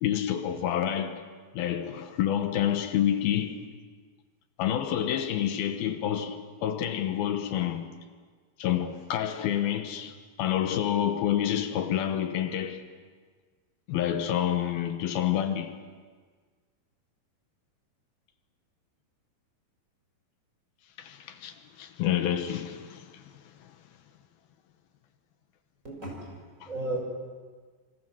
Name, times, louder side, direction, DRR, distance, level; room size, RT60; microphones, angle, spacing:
voice 1, 0.0-1.3 1.5-3.6 4.6-7.9 8.6-12.8 13.9-15.8 21.0-23.3 23.6-23.7 26.6-26.7, left 10 dB, 80° left, 3.0 m, -28 dB
voice 2, 25.8-26.3 26.6-27.0, right 2 dB, 20° right, 6.2 m, -34 dB
26.5 x 25.5 x 6.2 m
omnidirectional pair, 4.3 m